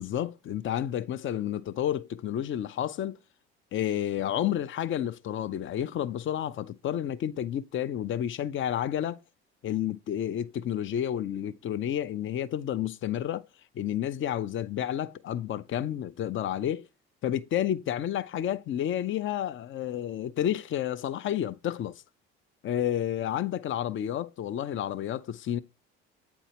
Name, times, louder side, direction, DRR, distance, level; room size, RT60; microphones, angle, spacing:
voice 1, 0.0-3.2 3.7-9.2 9.6-13.4 13.7-16.9 17.2-22.0 22.6-25.6, left 10 dB, 45° left, 0.6 m, -30 dB
8.3 x 4.5 x 2.9 m
hypercardioid pair, 65°, 29 cm